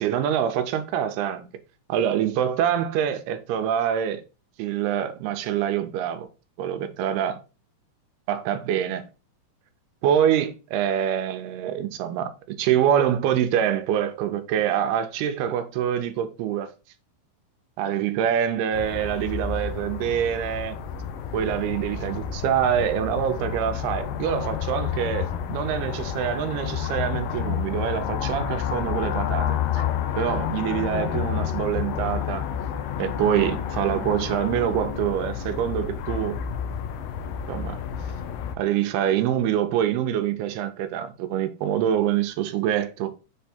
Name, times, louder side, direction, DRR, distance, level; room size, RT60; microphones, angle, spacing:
voice 1, 0.0-1.5 1.9-4.2 4.6-6.3 6.6-7.4 8.3-9.0 10.0-16.7 17.8-20.8 21.3-29.9 30.2-32.4 33.0-36.4 37.5-37.8 38.6-43.2, right 10 dB, 90° right, 2.7 m, -25 dB
sound 1, 18.7-38.5, left 9 dB, 75° left, 2.5 m, -30 dB
7.2 x 3.5 x 4.2 m
omnidirectional pair, 4.4 m